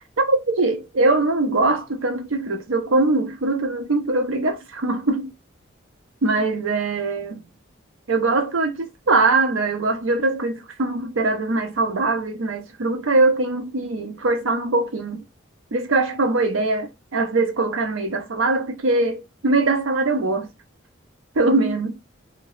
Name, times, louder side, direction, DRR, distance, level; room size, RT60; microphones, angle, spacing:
voice 1, 0.2-5.3 6.2-7.4 8.1-15.2 15.7-20.5 21.4-22.0, right 3 dB, 80° right, 0.6 m, -22 dB
2.7 x 2.0 x 3.0 m
head